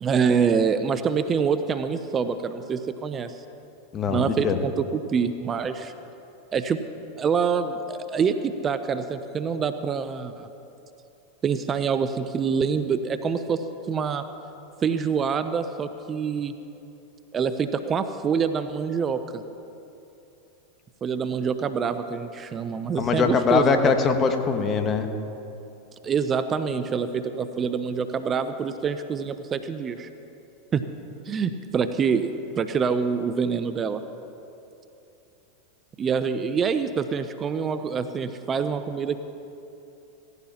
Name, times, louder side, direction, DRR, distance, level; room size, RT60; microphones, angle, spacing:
voice 1, 0.0-3.4 4.1-5.9 6.5-6.8 7.2-10.5 11.4-14.2 14.8-16.5 17.3-19.4 21.0-23.9 26.0-30.1 30.7-30.8 31.3-34.0 36.0-39.2, right 6 dB, 30° right, 10 dB, 0.6 m, -26 dB
voice 2, 3.9-4.6 23.0-25.1, left 5 dB, 30° left, 7 dB, 1.2 m, -22 dB
17.0 x 15.0 x 2.9 m, 2.9 s
hypercardioid pair, 90°, 0 cm